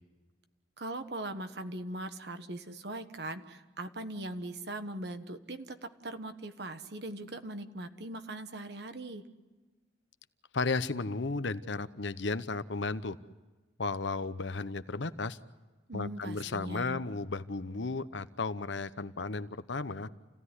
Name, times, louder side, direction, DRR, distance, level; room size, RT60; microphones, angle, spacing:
voice 1, 0.8-9.2 15.9-17.0, right 1 dB, 60° right, 8 dB, 1.4 m, -40 dB
voice 2, 10.5-13.2 13.8-15.4 15.9-20.1, left 3 dB, 75° left, 13 dB, 0.9 m, -34 dB
29.0 x 16.5 x 9.8 m, 1.2 s
head